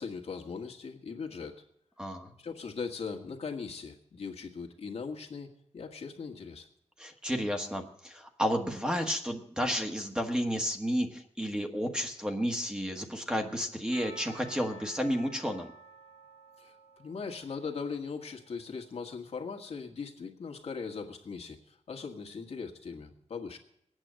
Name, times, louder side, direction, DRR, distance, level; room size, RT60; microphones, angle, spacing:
voice 1, 0.0-1.6 2.4-6.7 16.6-23.6, left 5 dB, 65° left, 2 dB, 1.7 m, -39 dB
voice 2, 2.0-2.3 7.0-15.7, equal, 5° right, 4 dB, 1.2 m, -32 dB
Percussion / Church bell, 13.9-18.9, right 3 dB, 65° right, 3.3 m, -52 dB
20.0 x 9.0 x 7.8 m, 0.73 s
wide cardioid pair, 180°, 12 cm